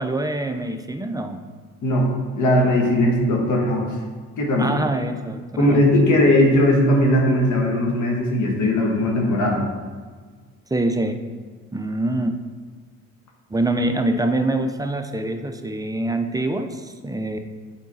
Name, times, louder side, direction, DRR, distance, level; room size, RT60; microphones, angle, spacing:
voice 1, 0.0-1.4 4.6-5.9 10.7-11.2 11.7-12.4 13.5-17.4, right 2 dB, 10° right, 6 dB, 0.5 m, -25 dB
voice 2, 1.8-4.0 4.4-4.7 5.6-9.7, left 1 dB, 75° left, 0 dB, 1.5 m, -19 dB
7.4 x 3.9 x 4.1 m, 1.5 s
cardioid pair, 90°, 30 cm